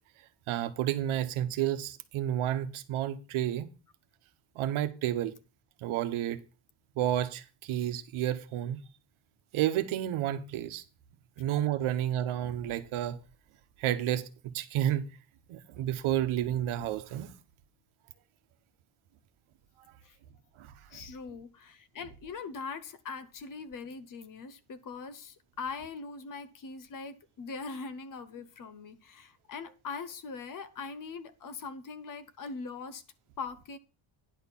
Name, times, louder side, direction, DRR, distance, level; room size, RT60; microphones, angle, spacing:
voice 1, 0.5-3.7 4.5-5.3 5.8-6.4 7.0-8.8 9.5-10.8 11.4-13.2 13.8-14.3 14.5-15.0 15.5-17.3 20.6-21.0, right 12 dB, 80° right, 1.1 m, -31 dB
voice 2, 20.9-33.0 33.4-33.8, left 4 dB, 40° left, 0.9 m, -41 dB
10.0 x 4.3 x 7.2 m
cardioid pair, 180°, 48 cm